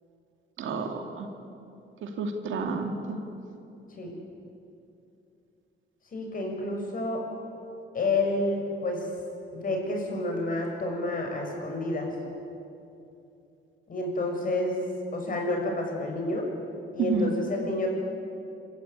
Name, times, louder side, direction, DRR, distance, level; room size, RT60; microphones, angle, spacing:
voice 1, 0.6-1.3 2.0-3.2 17.0-17.3, right 4 dB, 80° right, 4 dB, 2.6 m, -30 dB
voice 2, 6.1-7.2 7.9-9.1 9.5-12.1 13.9-14.8 15.1-16.5 16.9-17.9, left 2 dB, 45° left, 2 dB, 6.2 m, -29 dB
27.0 x 14.5 x 9.6 m, 2.7 s
cardioid pair, 105°, 20 cm